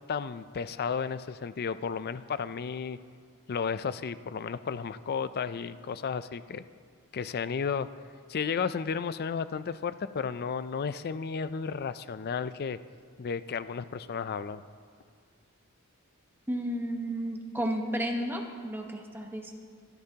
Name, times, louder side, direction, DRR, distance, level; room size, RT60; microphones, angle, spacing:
voice 1, 0.1-3.0 3.5-6.6 7.1-7.9 8.3-12.8 13.2-14.6, left 6 dB, 45° left, 14 dB, 0.4 m, -33 dB
voice 2, 16.5-19.5, equal, 10° right, 2 dB, 1.1 m, -32 dB
23.0 x 12.0 x 2.9 m, 2.2 s
head